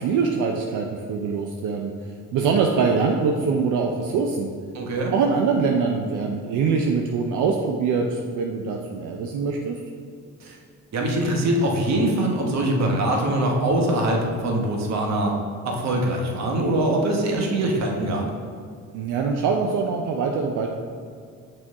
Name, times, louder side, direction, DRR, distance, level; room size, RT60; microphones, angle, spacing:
voice 1, 0.0-1.9 2.3-4.5 5.1-9.8 18.9-20.7, right 5 dB, 90° right, 2 dB, 0.6 m, -23 dB
voice 2, 4.7-5.1 10.4-10.6 10.9-15.3 15.6-18.2, right 1 dB, 60° right, 0 dB, 1.2 m, -23 dB
6.4 x 4.4 x 3.6 m, 2.2 s
cardioid pair, 90°, 30 cm